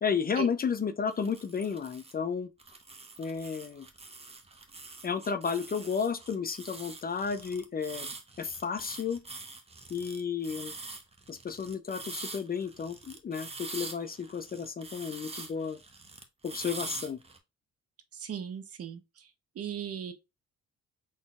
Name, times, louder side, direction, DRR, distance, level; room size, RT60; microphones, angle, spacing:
voice 1, 0.0-2.5 3.2-3.9 5.0-8.1 8.4-9.2 9.9-10.7 11.3-15.8 16.4-17.2, left 6 dB, 30° left, 0.5 m, -32 dB
sound 1, 1.1-2.1 2.6-17.4, right 3 dB, 20° right, 0.9 m, -44 dB
voice 2, 18.1-19.3 19.6-20.1, right 8 dB, 50° right, 0.9 m, -37 dB
4.1 x 3.8 x 2.4 m
cardioid pair, 90°, 30 cm